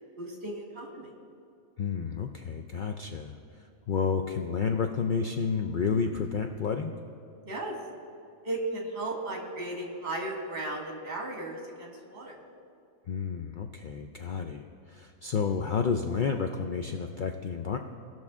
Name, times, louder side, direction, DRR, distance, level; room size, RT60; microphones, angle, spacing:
voice 1, 0.2-1.1 7.5-7.7 8.5-12.4, right 2 dB, 50° right, 0 dB, 1.8 m, -35 dB
voice 2, 1.8-3.4 3.9-6.9 13.1-17.8, left 5 dB, 85° left, 5 dB, 0.4 m, -30 dB
18.5 x 6.2 x 3.5 m, 2.7 s
omnidirectional pair, 1.5 m